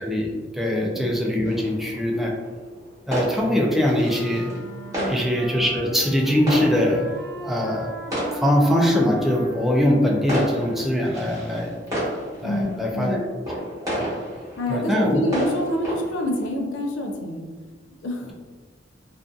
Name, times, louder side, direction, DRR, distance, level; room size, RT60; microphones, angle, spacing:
voice 1, 0.0-2.3 3.1-4.5 5.1-7.1 7.4-7.9 8.3-11.7 12.4-13.2 13.8-14.1 14.7-15.3, left 1 dB, ahead, -2 dB, 0.3 m, -22 dB
sound 1, 1.4-16.6, equal, 20° right, 1.1 m, -33 dB
sound 2, 4.0-11.3, right 2 dB, 85° right, 0.6 m, -39 dB
voice 2, 12.4-13.2 14.6-17.5 18.0-18.3, left 1 dB, 75° left, 2 dB, 0.4 m, -27 dB
2.5 x 2.5 x 2.3 m, 1.4 s
head